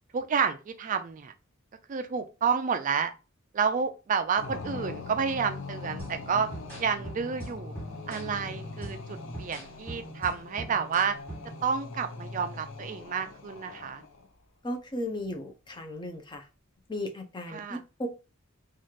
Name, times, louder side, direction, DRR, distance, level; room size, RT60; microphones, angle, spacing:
voice 1, 0.1-1.3 1.9-3.1 3.5-6.5 6.8-7.7 8.1-11.2 11.6-14.0 17.5-17.8, right 6 dB, 40° right, 0.3 m, -30 dB
sound 1, 4.4-14.3, left 3 dB, 65° left, 0.6 m, -42 dB
sound 2, 6.0-11.6, right 1 dB, 5° left, 1.5 m, -43 dB
voice 2, 14.6-16.5 16.9-18.1, left 1 dB, 25° left, 0.6 m, -35 dB
3.1 x 2.4 x 4.2 m
head